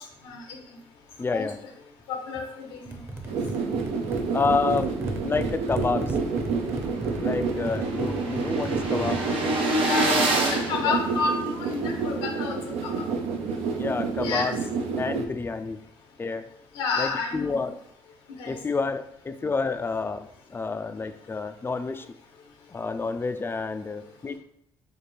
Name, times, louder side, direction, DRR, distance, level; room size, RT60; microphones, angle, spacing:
voice 1, 1.2-1.6 4.3-4.9 5.2-6.2 7.2-9.2 10.8-11.0 13.8-14.6 15.0-15.8 16.2-16.4 17.0-17.8 18.5-22.1 22.7-24.4, left 4 dB, 20° left, 9 dB, 0.3 m, -29 dB
voice 2, 2.1-3.0 9.9-10.1 10.5-13.0 14.2-14.5 16.7-17.7 18.4-18.5, left 4 dB, 90° left, 1 dB, 0.9 m, -30 dB
sound 1, 2.9-9.3, right 1 dB, 20° right, 0.7 m, -35 dB
sound 2, 3.3-15.2, right 4 dB, 75° right, 0.5 m, -29 dB
sound 3, 6.2-6.3 6.6-6.7 6.9-11.7, right 1 dB, 60° right, 1.0 m, -28 dB
4.1 x 2.1 x 3.3 m, 0.72 s
supercardioid pair, 65°, 11 cm